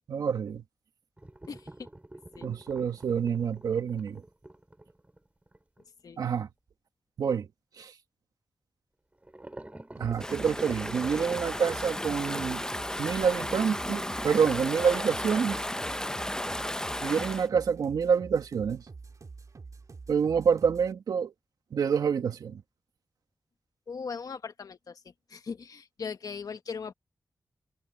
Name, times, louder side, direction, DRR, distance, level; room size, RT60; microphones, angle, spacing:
voice 1, 0.1-0.6 2.4-4.2 6.2-6.5 7.2-7.5 7.8-7.9 10.0-12.6 13.0-15.6 17.0-18.8 20.1-21.3 21.7-22.6, right 6 dB, 85° right, 1.9 m, -27 dB
sound 1, 1.2-5.8 9.2-16.1 16.4-16.5 16.9-17.0 17.4-17.5, right 1 dB, 20° right, 6.0 m, -46 dB
sound 2, 10.0-20.9, right 4 dB, 60° right, 2.1 m, -47 dB
Stream / Ocean, 10.2-17.5, left 1 dB, 10° left, 0.9 m, -34 dB
voice 2, 23.9-25.0 25.3-26.9, left 5 dB, 75° left, 1.6 m, -38 dB
cardioid pair, 40°, 6 cm